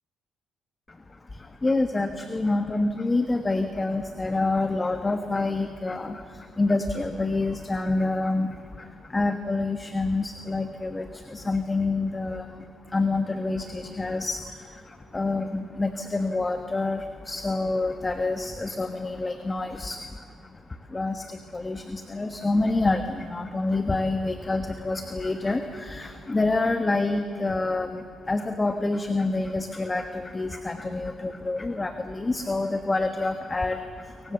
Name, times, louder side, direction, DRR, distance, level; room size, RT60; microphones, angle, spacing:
voice 1, 1.3-12.5 12.9-20.2 20.9-34.3, left 2 dB, 20° left, 7 dB, 1.4 m, -27 dB
25.5 x 24.0 x 7.1 m, 2.4 s
cardioid pair, 90°, 0 cm